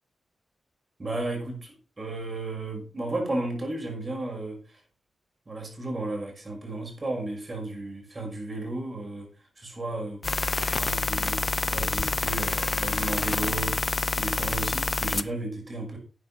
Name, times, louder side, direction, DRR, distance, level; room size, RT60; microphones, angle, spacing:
voice 1, 1.0-4.8 5.5-10.2 10.7-13.8 14.2-16.0, right 2 dB, 35° right, 2 dB, 5.9 m, -34 dB
sound 1, 10.2-15.2, left 3 dB, 35° left, 0.7 m, -27 dB
12.0 x 9.3 x 4.3 m, 0.37 s
wide cardioid pair, 90°, 0 cm